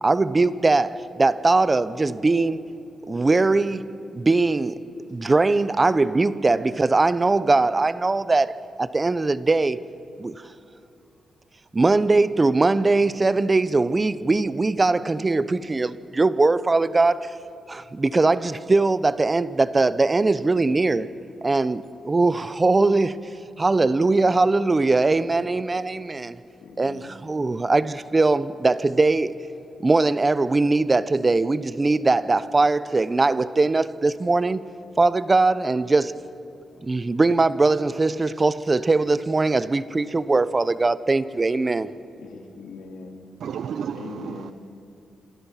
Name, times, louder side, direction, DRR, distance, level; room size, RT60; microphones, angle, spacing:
voice 1, 0.0-2.7 3.1-3.9 4.1-4.8 5.1-9.8 10.2-10.4 11.7-17.4 17.7-21.1 21.4-23.2 23.6-26.4 26.8-29.4 29.8-34.6 35.0-36.2 36.8-41.9, right 3 dB, 25° right, 0.8 m, -21 dB
voice 2, 26.6-27.1 42.2-43.2 43.9-44.5, left 4 dB, 80° left, 2.8 m, -41 dB
voice 3, 43.4-44.5, right 8 dB, 75° right, 0.6 m, -32 dB
27.0 x 26.5 x 5.8 m
cardioid pair, 100°, 0 cm